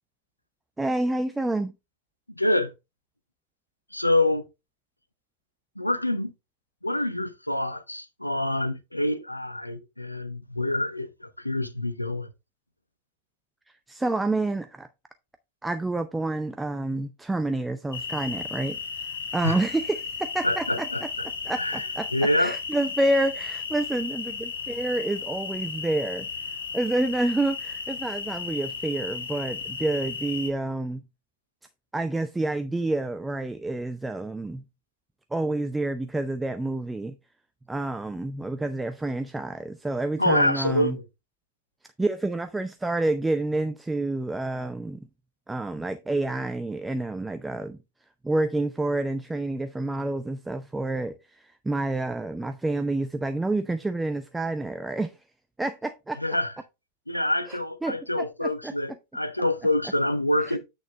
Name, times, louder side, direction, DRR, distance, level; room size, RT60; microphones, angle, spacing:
voice 1, 0.8-1.7 13.9-14.9 15.6-18.8 19.3-21.1 21.5-22.1 22.4-26.3 26.7-31.0 31.9-34.6 35.3-37.2 37.7-41.0 42.0-45.0 45.5-47.8 48.2-55.1 55.6-56.2 57.5-58.0 58.4-58.7 60.4-60.6, right 2 dB, 10° right, 0.6 m, -28 dB
voice 2, 2.4-2.7 3.9-4.4 5.8-6.3 6.8-12.3 19.4-19.6 20.4-21.0 21.6-21.9 22.1-22.6 40.2-41.0 56.2-56.5 57.1-60.6, left 1 dB, 85° left, 0.8 m, -26 dB
sound 1, 17.9-30.5, left 5 dB, 70° left, 1.2 m, -34 dB
8.7 x 6.3 x 3.3 m
figure-of-eight pair, 90°, 0 cm